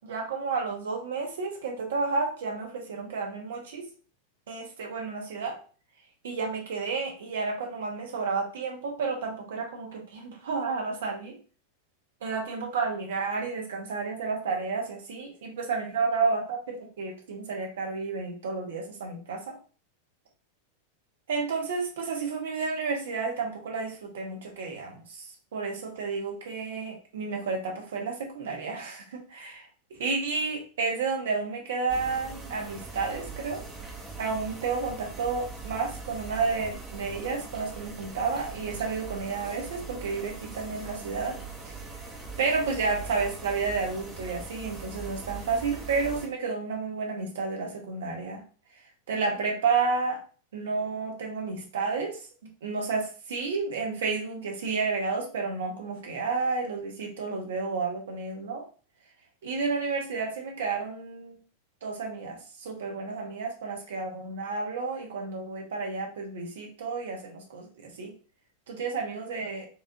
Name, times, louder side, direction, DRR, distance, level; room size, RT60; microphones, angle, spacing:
voice 1, 0.0-3.8 4.5-5.6 6.2-11.4 12.2-19.6 21.3-25.3 25.5-33.6 34.2-41.4 41.6-41.7 42.4-48.4 49.1-50.2 50.5-52.2 52.6-58.6 59.4-61.3 61.8-68.1 68.7-69.7, right 4 dB, 60° right, 1 dB, 1.0 m, -31 dB
sound 1, 31.9-46.3, right 4 dB, 15° right, 0.9 m, -41 dB
4.7 x 2.6 x 2.7 m, 0.38 s
figure-of-eight pair, 90°, 0 cm